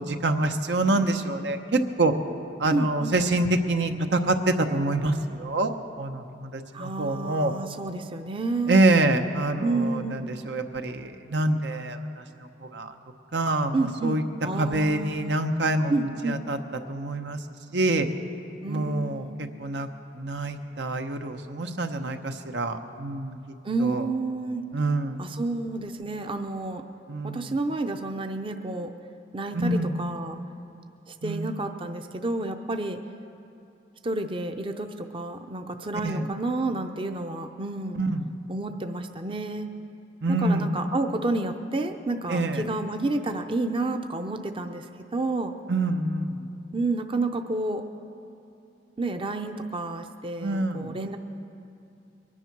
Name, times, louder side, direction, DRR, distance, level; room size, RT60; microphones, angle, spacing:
voice 1, 0.0-2.1 2.6-5.7 6.0-7.5 8.7-12.9 13.3-14.2 14.6-16.0 16.2-16.6 16.9-17.4 17.7-18.1 18.7-19.2 19.6-19.9 20.1-23.4 23.8-24.0 24.7-25.2 27.1-27.5 29.5-30.0 31.2-31.5 35.9-36.3 37.9-38.3 40.2-40.7 42.3-42.7 45.7-46.4 50.4-50.9, right 2 dB, 80° right, 6 dB, 0.9 m, -26 dB
voice 2, 2.7-3.1 6.7-8.9 9.6-10.3 13.7-15.4 15.9-16.4 18.6-19.5 23.6-24.6 25.2-26.8 27.2-28.9 29.3-30.4 31.1-33.0 34.0-38.0 38.5-39.7 40.4-45.5 46.7-47.8 49.0-51.2, right 2 dB, 30° right, 6 dB, 0.6 m, -30 dB
22.5 x 10.0 x 6.0 m, 2.7 s
head